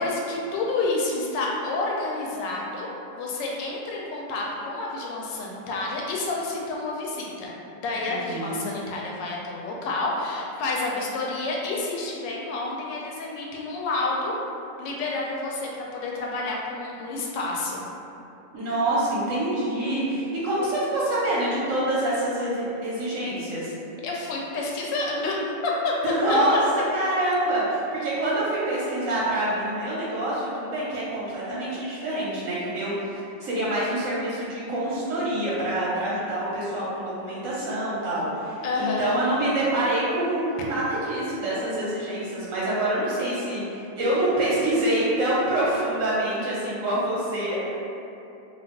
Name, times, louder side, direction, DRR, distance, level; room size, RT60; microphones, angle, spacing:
voice 1, 0.0-2.9 3.2-14.4 14.8-17.8 24.0-25.9 26.3-26.4 38.6-39.2, left 2 dB, 80° left, -3 dB, 1.2 m, -29 dB
voice 2, 8.1-8.7 18.5-23.7 26.0-26.6 26.9-32.9 33.4-47.8, right 1 dB, 65° right, -8 dB, 0.8 m, -26 dB
2.8 x 2.3 x 3.5 m, 2.8 s
omnidirectional pair, 1.9 m